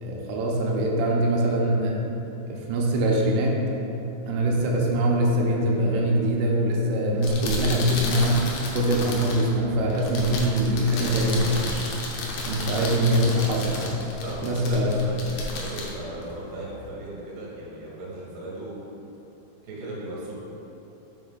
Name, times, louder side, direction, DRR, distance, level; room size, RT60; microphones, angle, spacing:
voice 1, 0.0-2.0 2.5-3.6 4.3-12.0 12.4-14.0 14.4-14.9, right 1 dB, 85° right, -2 dB, 3.1 m, -23 dB
sound 1, 7.1-16.9, left 2 dB, 85° left, 2.3 m, -33 dB
voice 2, 14.2-18.8 19.6-20.4, right 1 dB, 60° right, -6 dB, 2.5 m, -37 dB
6.2 x 5.7 x 3.7 m, 3.0 s
omnidirectional pair, 5.9 m